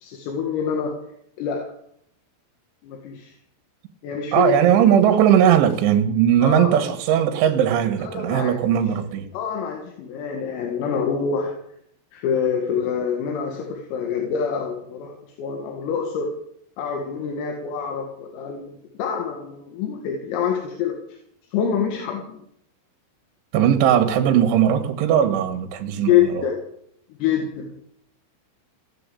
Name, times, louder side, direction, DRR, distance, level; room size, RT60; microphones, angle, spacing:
voice 1, 0.0-1.0 1.4-1.7 2.8-3.3 4.0-4.6 6.4-6.7 8.0-8.6 9.3-11.6 12.1-16.4 16.8-18.7 19.0-21.0 21.5-22.4 26.1-26.6 27.2-27.7, left 7 dB, 80° left, 4.4 m, -26 dB
voice 2, 4.3-9.3 23.5-26.5, right 9 dB, 70° right, 3.9 m, -18 dB
16.0 x 9.9 x 8.5 m
omnidirectional pair, 6.0 m